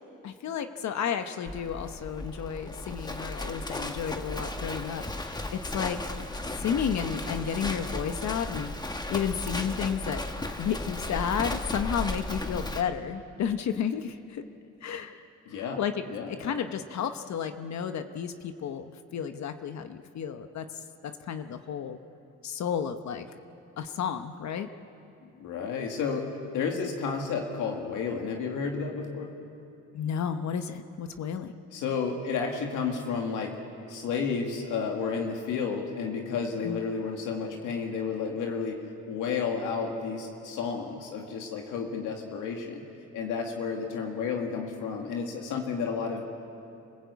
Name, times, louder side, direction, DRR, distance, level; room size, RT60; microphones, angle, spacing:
voice 1, 0.2-6.0 6.6-10.2 10.6-14.4 14.8-15.2 15.5-15.9 16.3-22.0 22.4-23.2 23.8-24.7 29.9-31.5 36.6-36.8, left 8 dB, 65° left, 8 dB, 1.1 m, -32 dB
Livestock farm animals working animals, 1.5-12.8, left 1 dB, 15° left, 1.4 m, -35 dB
voice 2, 15.5-15.8 16.1-16.5 25.3-29.3 31.7-33.6 33.9-42.8 43.1-46.2, left 5 dB, 90° left, 2 dB, 2.1 m, -32 dB
27.5 x 15.5 x 8.3 m, 2.6 s
cardioid pair, 90°, 30 cm